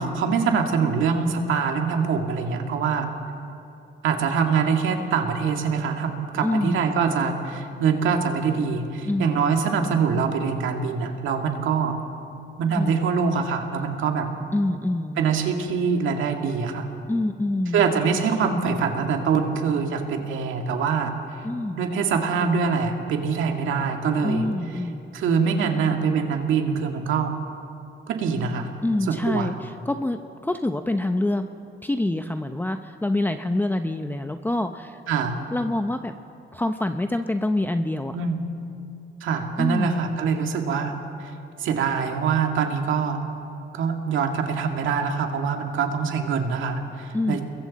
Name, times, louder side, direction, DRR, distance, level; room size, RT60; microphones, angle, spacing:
voice 1, 0.0-3.1 4.0-12.0 12.6-14.3 15.2-16.9 17.7-21.1 21.8-24.5 25.1-27.3 28.1-28.7 29.1-29.5 35.1-35.4 38.1-38.4 39.2-41.3 41.6-43.2 43.7-47.4, right 5 dB, 80° right, 3 dB, 2.1 m, -24 dB
voice 2, 6.4-6.9 9.0-9.3 12.7-13.0 14.5-15.2 17.1-17.8 21.4-21.9 24.2-25.0 28.8-31.5 31.8-35.0 35.5-36.1 36.5-38.2 39.6-40.1 47.1-47.4, left 1 dB, 10° left, 7 dB, 0.7 m, -26 dB
29.0 x 22.0 x 4.2 m, 2.7 s
cardioid pair, 90°, 20 cm